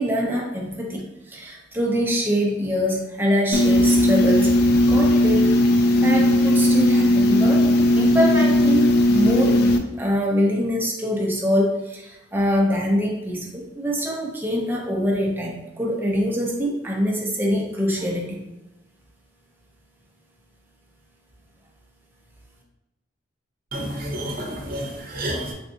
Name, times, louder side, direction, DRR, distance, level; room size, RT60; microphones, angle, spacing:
voice 1, 0.0-4.5 4.9-5.6 6.0-18.4, equal, 10° right, -2 dB, 0.5 m, -24 dB
sound 1, 3.5-9.8, left 1 dB, 55° left, 0.3 m, -17 dB
voice 2, 23.7-25.5, right 1 dB, 50° right, 0 dB, 0.7 m, -30 dB
3.4 x 2.6 x 2.6 m, 0.95 s
head